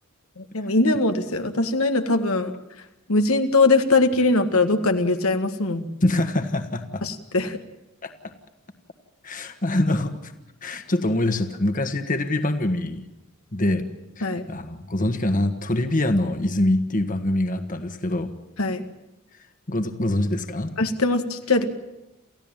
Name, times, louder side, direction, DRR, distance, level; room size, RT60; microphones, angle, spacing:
voice 1, 0.4-2.5 3.1-5.8 7.0-7.6 14.2-14.4 18.6-18.8 20.8-21.7, left 3 dB, 85° left, 6 dB, 1.9 m, -21 dB
voice 2, 6.0-7.0 8.0-8.3 9.2-10.3 10.6-13.1 13.5-13.9 14.2-18.3 19.7-20.7, left 1 dB, 40° left, 8 dB, 1.6 m, -24 dB
29.0 x 15.0 x 9.0 m, 0.96 s
head